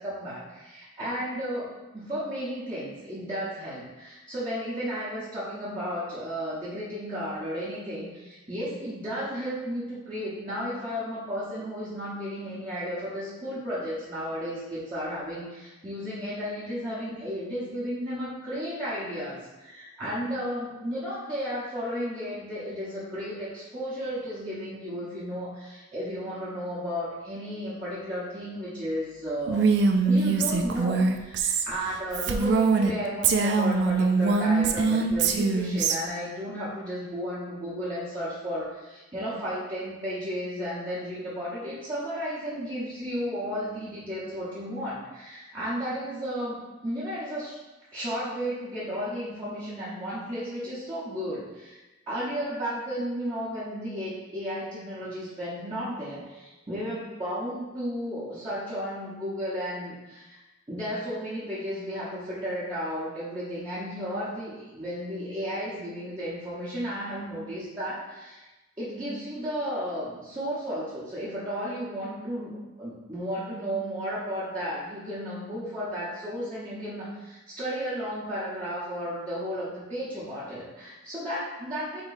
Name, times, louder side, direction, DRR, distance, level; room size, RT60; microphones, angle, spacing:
voice 1, 0.0-29.7 30.0-47.6 47.9-60.4 60.7-68.5 68.8-82.0, equal, 25° right, -13 dB, 1.0 m, -33 dB
Female speech woman speaking, 29.5-32.9 33.2-36.0, right 4 dB, 60° right, 0.3 m, -23 dB
3.8 x 2.9 x 4.0 m, 1.1 s
head